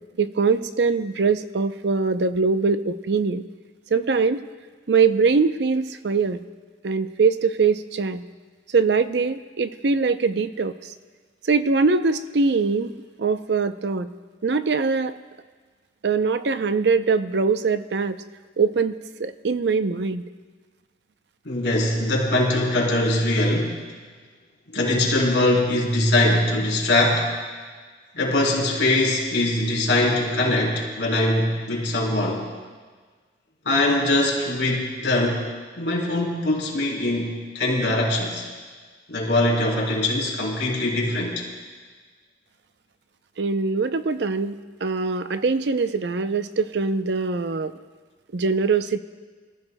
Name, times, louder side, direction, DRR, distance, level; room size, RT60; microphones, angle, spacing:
voice 1, 0.2-3.4 3.9-4.4 4.9-6.4 6.8-8.2 8.7-10.9 11.4-12.9 13.2-14.1 14.4-15.2 16.0-18.2 18.6-20.2 43.4-47.7 48.3-49.0, right 4 dB, 70° right, 11 dB, 0.6 m, -22 dB
voice 2, 21.5-23.9 24.7-27.3 28.1-32.5 33.7-35.4 35.8-38.5 39.1-41.4, left 1 dB, 75° left, -3 dB, 3.7 m, -22 dB
24.5 x 15.0 x 2.2 m, 1.5 s
head